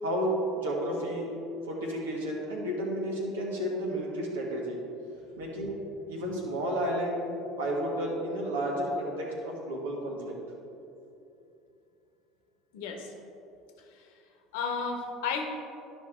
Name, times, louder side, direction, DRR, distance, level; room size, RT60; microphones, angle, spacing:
voice 1, 0.0-4.8 5.4-5.8 6.1-10.4, equal, 80° right, -2 dB, 1.6 m, -32 dB
voice 2, 12.7-13.1 13.9-14.1 14.5-15.4, left 5 dB, 70° left, 3 dB, 1.1 m, -33 dB
11.5 x 5.2 x 3.7 m, 2.8 s
hypercardioid pair, 70°, 0 cm